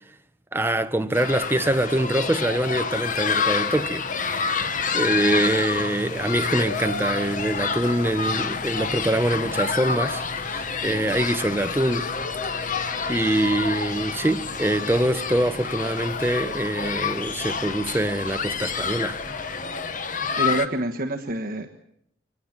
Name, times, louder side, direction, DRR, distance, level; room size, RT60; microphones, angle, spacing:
voice 1, 0.5-4.1 4.9-12.1 13.1-19.2, right 1 dB, 10° right, 0.9 m, -24 dB
sound 1, 1.1-20.7, left 5 dB, 45° left, 1.2 m, -28 dB
sound 2, 5.7-19.5, left 1 dB, 65° left, 5.7 m, -43 dB
voice 2, 20.4-21.7, right 1 dB, 50° right, 1.4 m, -27 dB
25.0 x 19.0 x 7.4 m
head